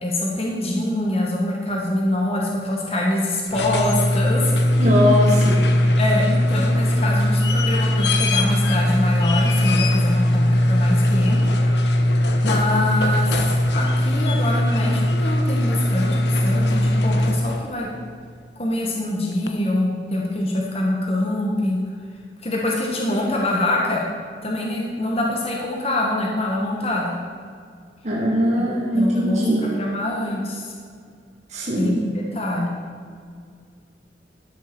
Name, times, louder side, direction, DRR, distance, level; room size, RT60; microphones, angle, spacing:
voice 1, 0.0-4.8 6.0-11.6 12.4-13.3 13.7-17.9 18.6-21.8 22.4-24.0 24.4-27.2 28.6-28.7 28.9-30.7 31.8-32.7, left 1 dB, 35° left, -2 dB, 1.4 m, -24 dB
sound 1, 3.5-17.7 19.5-19.6, left 1 dB, 70° left, 1.0 m, -19 dB
voice 2, 4.8-5.6 28.0-29.7 31.5-32.0, equal, 40° right, -3 dB, 1.4 m, -20 dB
12.5 x 7.0 x 6.0 m, 2.1 s
head